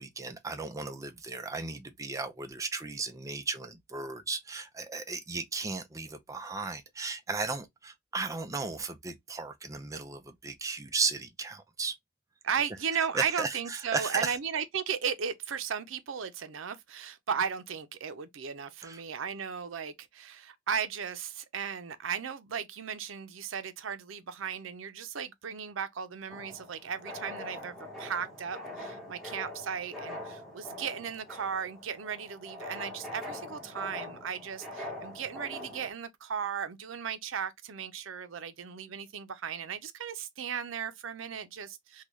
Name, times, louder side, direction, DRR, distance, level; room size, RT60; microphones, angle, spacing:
voice 1, 0.0-12.0 13.1-14.4 18.8-19.0, right 4 dB, 15° right, 0.5 m, -35 dB
voice 2, 12.4-42.0, right 7 dB, 90° right, 0.5 m, -36 dB
sound 1, 26.3-35.9, left 1 dB, ahead, 1.1 m, -43 dB
3.8 x 2.2 x 3.1 m
head